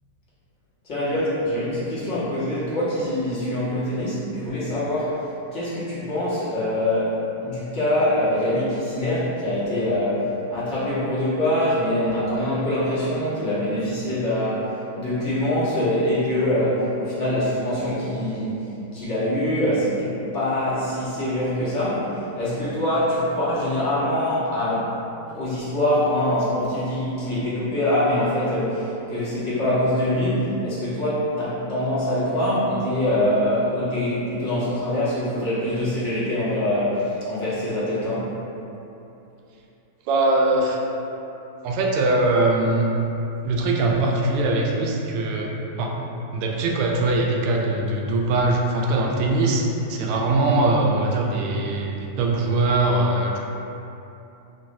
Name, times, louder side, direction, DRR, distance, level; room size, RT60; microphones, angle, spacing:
voice 1, 0.8-5.2 5.5-24.9 25.3-38.3, left 1 dB, 50° left, -10 dB, 1.2 m, -24 dB
voice 2, 40.1-40.8 41.6-42.9 43.4-46.0 46.3-53.4, right 2 dB, 50° right, -1 dB, 0.3 m, -22 dB
3.0 x 2.1 x 2.6 m, 2.9 s
figure-of-eight pair, 95°, 0 cm